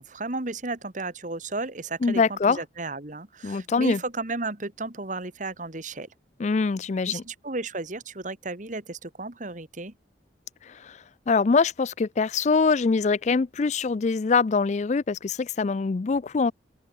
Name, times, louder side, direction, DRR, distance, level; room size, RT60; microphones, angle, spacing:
voice 1, 0.0-6.1 7.0-9.9, right 3 dB, 45° right, 2.0 m, -34 dB
voice 2, 2.0-2.6 3.4-4.0 6.4-7.2 10.6-16.5, left 4 dB, 40° left, 0.4 m, -24 dB
open air
head